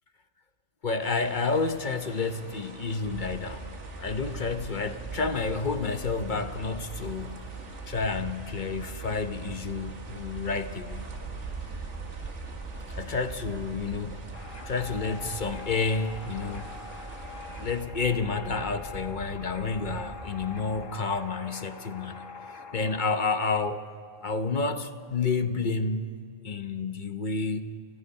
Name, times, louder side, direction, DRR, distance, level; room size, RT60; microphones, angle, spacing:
voice 1, 0.8-3.7 4.0-7.4 7.9-11.1 12.9-14.2 14.6-16.7 17.6-22.3 22.7-23.8 24.2-26.1 26.4-27.7, left 4 dB, 45° left, 9 dB, 0.9 m, -30 dB
sound 1, 1.0-17.8, right 3 dB, 70° right, 2.0 m, -47 dB
sound 2, 3.0-20.9, right 3 dB, 35° right, 2.9 m, -41 dB
sound 3, 14.3-23.2, left 4 dB, 90° left, 2.0 m, -44 dB
30.0 x 16.0 x 5.4 m, 2.4 s
omnidirectional pair, 1.3 m